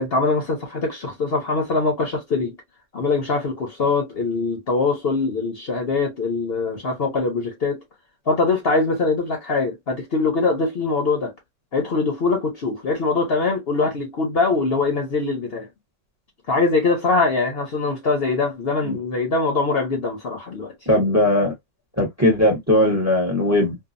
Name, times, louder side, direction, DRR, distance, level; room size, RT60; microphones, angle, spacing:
voice 1, 0.0-2.6 2.9-7.8 8.3-11.3 11.7-15.7 16.5-20.7, left 3 dB, 50° left, 0.9 m, -22 dB
voice 2, 20.9-21.5 22.0-23.8, left 1 dB, 15° right, 0.8 m, -19 dB
2.8 x 2.3 x 2.4 m
omnidirectional pair, 1.5 m